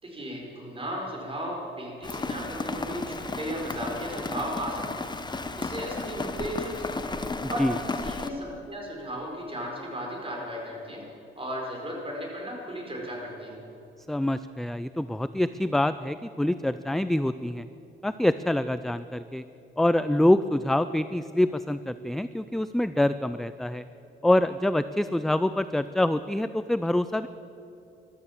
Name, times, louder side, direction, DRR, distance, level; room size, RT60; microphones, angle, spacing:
voice 1, 0.0-7.1 7.5-7.6 8.0-11.0 11.4-13.6, equal, 30° right, -1 dB, 4.8 m, -35 dB
Rain, 2.0-8.3, left 3 dB, 20° left, 1.0 m, -34 dB
voice 2, 7.4-7.8 14.1-17.7 18.0-19.4 19.8-23.8 24.2-27.3, left 1 dB, ahead, 13 dB, 0.3 m, -25 dB
14.5 x 12.5 x 7.3 m, 2.8 s
cardioid pair, 90°, 20 cm